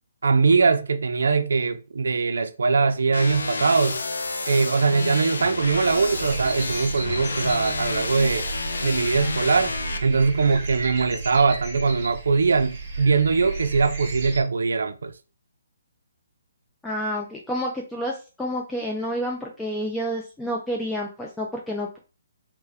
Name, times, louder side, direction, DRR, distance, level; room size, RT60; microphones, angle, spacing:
voice 1, 0.2-4.0 4.5-8.5 8.8-9.7 10.0-15.1, right 4 dB, 80° right, 0.5 m, -21 dB
sound 1, 3.1-10.0, left 3 dB, 90° left, 0.5 m, -30 dB
sound 2, 5.6-14.4, right 3 dB, 30° right, 1.3 m, -34 dB
voice 2, 16.8-22.0, equal, 5° left, 0.3 m, -29 dB
3.3 x 2.1 x 3.4 m
hypercardioid pair, 165°, 0 cm